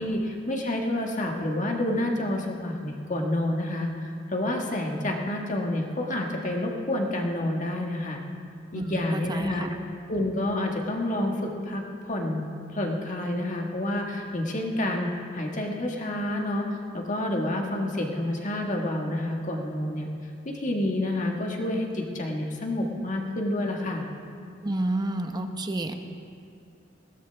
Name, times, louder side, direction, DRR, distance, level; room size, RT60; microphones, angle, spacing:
voice 1, 0.0-3.9 4.3-8.2 8.7-9.7 10.1-20.1 20.4-24.0, left 1 dB, 40° left, 1 dB, 1.7 m, -29 dB
voice 2, 8.7-9.8 24.6-25.9, right 1 dB, 20° right, 6 dB, 0.9 m, -30 dB
21.5 x 17.0 x 3.5 m, 2.4 s
head